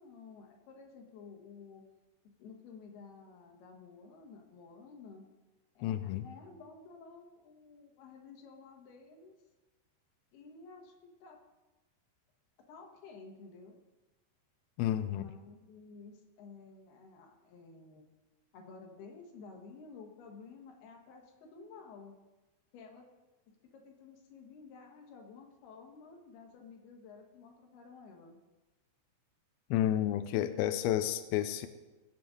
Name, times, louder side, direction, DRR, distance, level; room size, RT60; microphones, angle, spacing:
voice 1, 0.0-1.9 2.4-5.2 5.7-9.4 10.3-11.4 12.7-13.8 15.1-18.1 18.5-22.1 22.7-23.1 23.5-28.4, left 4 dB, 70° left, 2 dB, 3.3 m, -52 dB
voice 2, 5.8-6.3 14.8-15.2 29.7-31.7, left 12 dB, 85° left, 10 dB, 2.2 m, -31 dB
21.5 x 7.8 x 3.8 m, 1.1 s
omnidirectional pair, 5.0 m